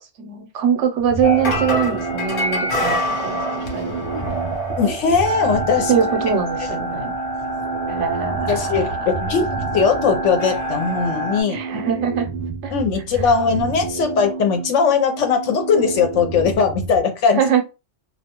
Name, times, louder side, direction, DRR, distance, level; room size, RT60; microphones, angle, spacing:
voice 1, 0.2-4.0 5.9-7.1 7.9-9.4 11.5-12.3 12.6-12.7 13.2-13.3 17.4-17.6, right 7 dB, 75° right, 0.9 m, -22 dB
sound 1, 1.0-17.0, right 5 dB, 60° right, 0.6 m, -31 dB
sound 2, 1.2-11.4, equal, 50° left, 0.8 m, -26 dB
voice 2, 4.8-5.9 8.5-11.6 12.7-17.4, left 5 dB, 75° left, 1.0 m, -19 dB
2.4 x 2.2 x 2.8 m
omnidirectional pair, 1.3 m